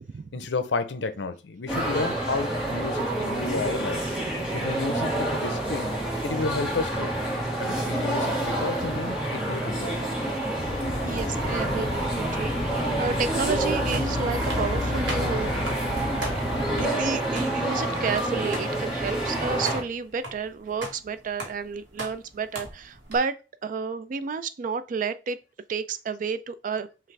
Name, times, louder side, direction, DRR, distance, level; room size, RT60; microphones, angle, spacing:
voice 1, 0.3-4.0 4.5-5.9 6.2-7.1 7.6-10.0, left 4 dB, 75° left, 0.6 m, -31 dB
sound 1, 1.7-19.8, right 1 dB, 5° right, 1.3 m, -28 dB
sound 2, 10.6-16.9, left 2 dB, 35° left, 0.6 m, -32 dB
voice 2, 11.0-15.5 16.5-25.4 25.7-26.9, right 5 dB, 45° right, 0.3 m, -31 dB
sound 3, 13.9-23.2, right 2 dB, 80° right, 1.3 m, -39 dB
5.7 x 2.5 x 3.2 m
head